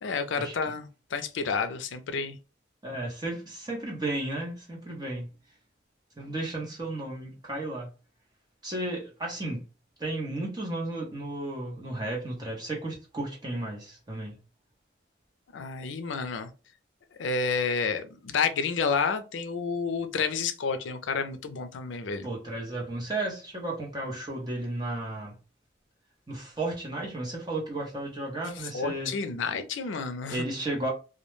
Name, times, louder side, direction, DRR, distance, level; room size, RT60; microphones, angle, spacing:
voice 1, 0.0-2.4 15.5-16.5 17.2-22.3 28.6-30.4, left 5 dB, 90° left, 0.4 m, -30 dB
voice 2, 2.8-5.3 6.2-7.9 8.6-9.6 10.0-14.3 22.2-25.4 26.3-29.1 30.2-30.9, right 2 dB, 20° right, 0.8 m, -33 dB
2.3 x 2.1 x 3.0 m
head